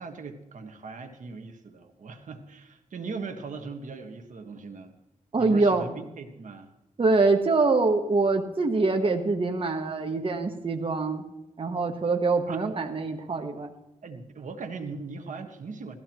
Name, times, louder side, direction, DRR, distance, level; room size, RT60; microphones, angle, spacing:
voice 1, 0.0-4.9 5.4-6.7 12.5-12.6 14.0-16.0, right 4 dB, 70° right, 6 dB, 1.5 m, -39 dB
voice 2, 5.3-5.9 7.0-11.2 11.6-13.7, right 3 dB, 40° right, 4 dB, 1.2 m, -24 dB
17.5 x 13.5 x 3.0 m, 0.94 s
cardioid pair, 80°, 14 cm